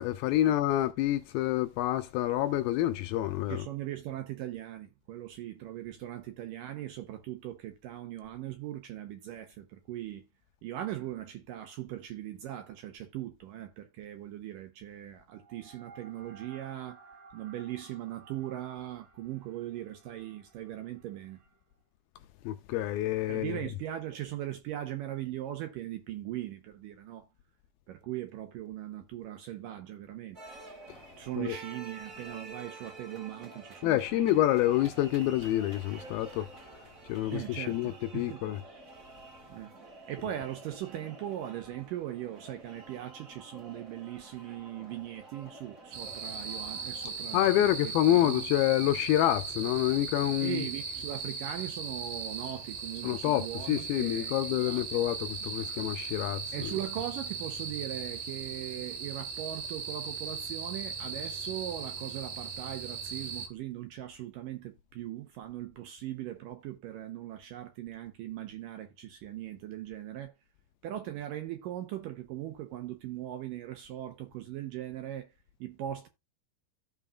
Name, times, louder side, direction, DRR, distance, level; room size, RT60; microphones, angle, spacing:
voice 1, 0.0-3.7 22.4-23.6 31.4-31.6 33.8-38.6 47.3-50.7 53.0-56.7, left 14 dB, 80° left, 2.2 m, -28 dB
voice 2, 3.5-10.2 10.6-21.5 23.3-27.3 27.9-30.4 31.2-34.4 37.3-38.4 39.5-39.7 40.1-48.4 50.4-54.8 55.4-55.7 56.5-70.3 70.8-75.3 75.6-76.1, right 13 dB, 75° right, 2.1 m, -40 dB
sound 1, 30.3-47.7, right 3 dB, 35° right, 1.4 m, -49 dB
sound 2, 45.9-63.5, right 5 dB, 60° right, 3.1 m, -38 dB
15.0 x 5.3 x 2.3 m
omnidirectional pair, 4.7 m